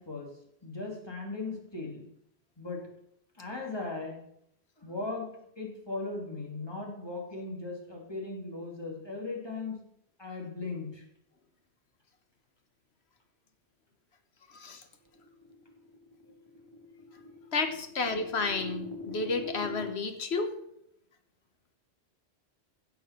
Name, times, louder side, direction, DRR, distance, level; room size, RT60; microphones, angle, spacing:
voice 1, 0.0-2.1 2.6-2.9 3.3-4.3 4.8-9.9 10.2-11.1, left 3 dB, 25° left, -1 dB, 2.7 m, -38 dB
voice 2, 14.5-14.8 17.5-20.5, left 4 dB, 75° left, 8 dB, 1.6 m, -31 dB
sound 1, 15.1-19.9, left 2 dB, 25° right, 1.5 m, -43 dB
16.0 x 5.8 x 5.9 m, 0.73 s
omnidirectional pair, 1.1 m